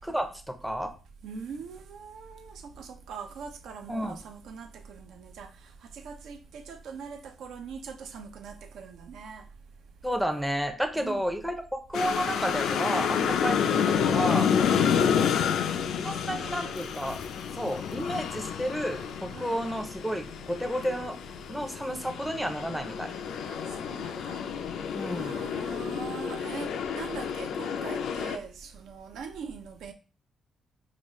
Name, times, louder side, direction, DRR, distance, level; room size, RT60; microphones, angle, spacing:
voice 1, 0.1-0.9 3.9-4.2 10.0-14.5 16.0-17.2 17.5-21.2 21.5-23.1 24.9-25.4, equal, ahead, 0.4 m, -31 dB
voice 2, 1.2-9.5 10.9-11.4 13.2-13.5 14.6-15.4 16.0-16.7 19.3-19.7 23.5-24.4 25.1-29.9, right 5 dB, 85° right, 0.5 m, -42 dB
sound 1, 11.9-28.4, left 7 dB, 90° left, 0.3 m, -29 dB
4.9 x 2.4 x 3.0 m
cardioid pair, 155°, 0 cm